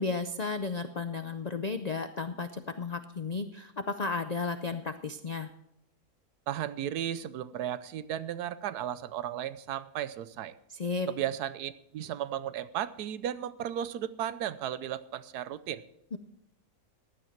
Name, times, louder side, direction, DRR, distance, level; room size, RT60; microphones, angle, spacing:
voice 1, 0.0-5.5 10.7-11.1 16.1-16.2, left 4 dB, 90° left, 9 dB, 0.3 m, -33 dB
voice 2, 6.5-10.5 11.1-15.8, right 11 dB, 85° right, 15 dB, 1.2 m, -35 dB
15.5 x 11.0 x 4.5 m, 0.79 s
omnidirectional pair, 1.6 m